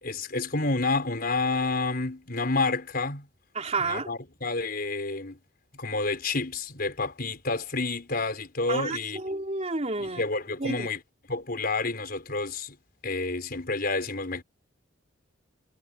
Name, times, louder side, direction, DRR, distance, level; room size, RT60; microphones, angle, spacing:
voice 1, 0.0-3.3 3.9-5.4 5.8-9.2 10.0-11.0 11.3-12.8 13.0-14.4, left 3 dB, 50° left, 5.0 m, -29 dB
voice 2, 3.5-4.1 8.7-10.2 10.6-10.9, right 3 dB, 35° right, 4.0 m, -30 dB
head